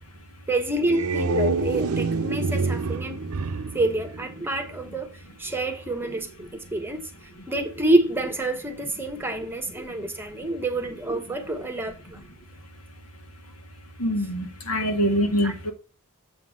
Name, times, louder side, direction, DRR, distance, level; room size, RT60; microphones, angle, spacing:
voice 1, 0.5-3.2 3.7-5.1 5.4-7.1 7.5-12.2 15.4-15.5, right 2 dB, 10° right, 1.1 m, -27 dB
sound 1, 0.7-4.9, right 3 dB, 85° right, 0.6 m, -27 dB
voice 2, 14.0-15.7, equal, 85° left, 2.1 m, -24 dB
7.8 x 3.9 x 6.2 m
head